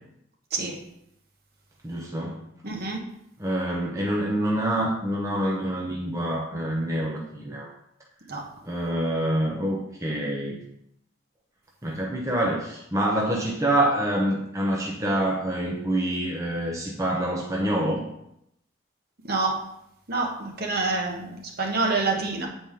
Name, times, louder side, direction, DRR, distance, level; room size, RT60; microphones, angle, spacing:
voice 1, 1.8-2.4 3.4-7.7 8.6-10.6 11.8-18.0, right 1 dB, 15° right, -2 dB, 0.7 m, -26 dB
voice 2, 2.6-3.0 8.3-8.4 19.3-19.6 20.1-22.5, right 3 dB, 50° right, 0 dB, 1.3 m, -27 dB
8.7 x 4.3 x 3.7 m, 0.78 s
head